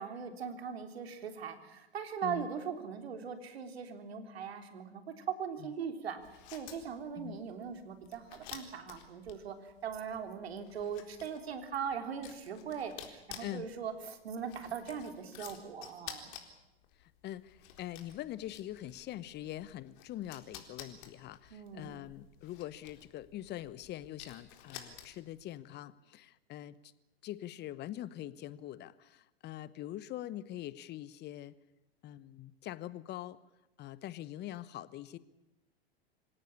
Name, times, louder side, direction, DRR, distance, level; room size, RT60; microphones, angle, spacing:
voice 1, 0.0-6.2 6.5-16.4 21.5-22.0, right 7 dB, 75° right, 7 dB, 3.6 m, -40 dB
sound 1, 6.2-25.4, left 10 dB, 50° left, 4.1 m, -52 dB
voice 2, 13.4-13.7 17.0-26.9 27.2-31.5 32.0-33.4 33.8-35.2, left 13 dB, 35° left, 18 dB, 1.0 m, -43 dB
26.0 x 17.0 x 8.6 m, 0.98 s
hypercardioid pair, 100°, 31 cm